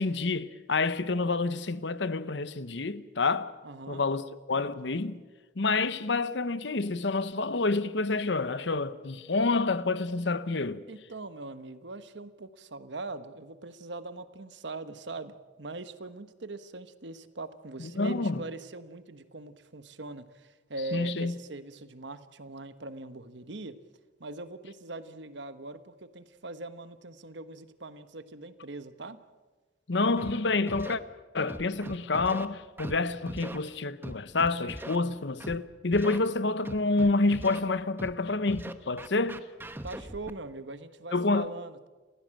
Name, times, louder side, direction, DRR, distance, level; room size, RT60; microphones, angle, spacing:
voice 1, 0.0-3.5 3.9-4.2 4.5-5.2 5.6-10.8 17.8-18.4 20.9-21.3 29.9-31.0 31.3-39.4 41.1-41.5, left 3 dB, 65° left, 0.9 m, -28 dB
voice 2, 3.6-4.0 10.9-23.8 24.2-29.2 39.8-41.9, right 2 dB, 70° right, 1.2 m, -41 dB
Scratching (performance technique), 30.2-30.3 30.7-30.9 31.5-32.5 32.8-33.0 33.3-33.6 34.0-35.0 35.4-35.6 35.9-36.2 36.7-37.6 38.0-38.1 38.5-40.3, right 1 dB, 10° right, 0.9 m, -40 dB
29.0 x 16.0 x 7.6 m
head